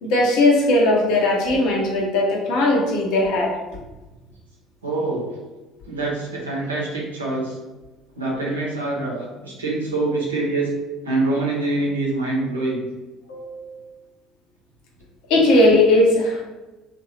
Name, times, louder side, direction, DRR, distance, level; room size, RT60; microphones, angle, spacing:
voice 1, 0.0-3.5 13.3-13.7 15.3-16.4, left 2 dB, 60° left, -1 dB, 0.6 m, -18 dB
voice 2, 4.8-5.3 5.9-7.6 8.2-10.7 11.0-12.8, right 2 dB, 80° right, -3 dB, 0.7 m, -25 dB
2.7 x 2.5 x 3.0 m, 1.1 s
figure-of-eight pair, 60°, 0 cm